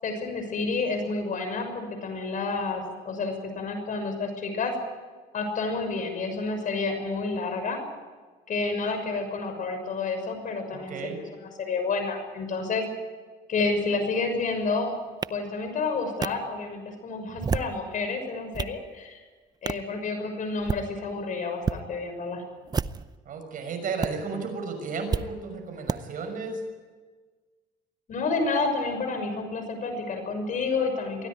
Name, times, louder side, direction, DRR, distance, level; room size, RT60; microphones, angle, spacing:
voice 1, 0.0-4.7 5.3-7.8 8.5-12.8 13.5-14.9 15.3-19.2 19.6-22.4 28.1-31.3, left 3 dB, 50° left, 6 dB, 6.3 m, -29 dB
voice 2, 10.9-11.2 23.3-26.6, right 4 dB, 55° right, 5 dB, 6.1 m, -33 dB
sound 1, 15.2-15.3 16.2-16.3 17.3-17.8 18.3-18.8 19.7-19.9 20.5-20.8 21.6-21.8 22.7-23.2 24.0-24.1 25.1-25.3 25.9-26.0, right 5 dB, 25° right, 0.6 m, -29 dB
24.0 x 16.5 x 9.6 m, 1.4 s
cardioid pair, 110°, 17 cm